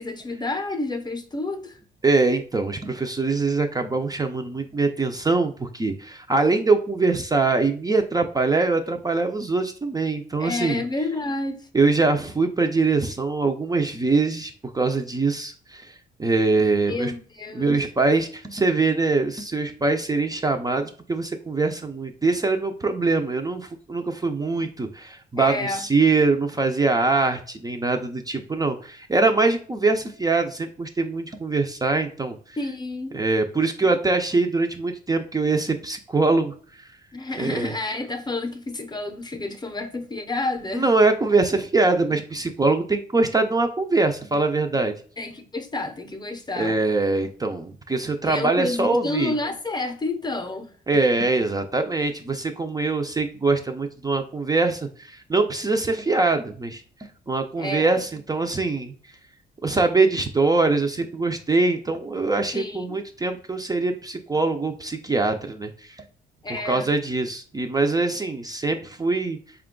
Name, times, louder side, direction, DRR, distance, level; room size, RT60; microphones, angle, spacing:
voice 1, 0.0-1.8 10.4-11.7 16.9-17.8 25.4-25.8 32.6-33.2 37.1-40.9 45.2-46.8 48.2-50.7 57.6-58.0 62.5-63.0 66.4-66.9, left 2 dB, 20° left, 0.7 m, -30 dB
voice 2, 2.0-10.8 11.7-17.1 17.5-32.6 33.1-36.9 37.3-37.7 40.7-44.9 46.6-49.3 50.9-58.9 59.6-66.0 66.5-69.4, right 3 dB, 20° right, 0.5 m, -23 dB
4.3 x 2.3 x 3.7 m
cardioid pair, 90°, 20 cm